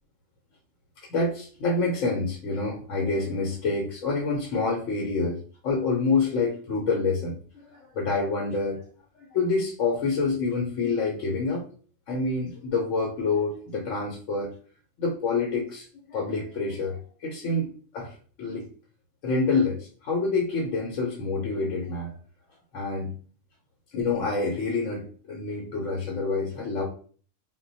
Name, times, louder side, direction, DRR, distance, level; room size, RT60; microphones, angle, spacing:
voice 1, 1.1-8.8 9.1-11.6 12.1-14.5 15.0-18.7 19.2-22.2 22.7-23.1 23.9-26.9, left 3 dB, 80° left, -1 dB, 1.0 m, -27 dB
2.2 x 2.1 x 3.8 m, 0.42 s
omnidirectional pair, 1.3 m